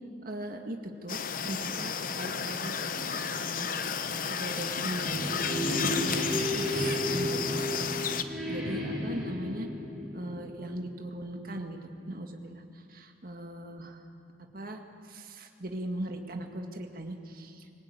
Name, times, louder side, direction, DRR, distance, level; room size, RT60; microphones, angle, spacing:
voice 1, 0.2-9.7 10.1-14.1 14.4-17.7, right 1 dB, 50° right, 4 dB, 2.0 m, -39 dB
sound 1, 1.1-8.2, left 6 dB, 50° left, 0.9 m, -32 dB
sound 2, 4.5-11.2, equal, ahead, 6.0 m, -33 dB
25.0 x 18.5 x 9.0 m, 2.4 s
head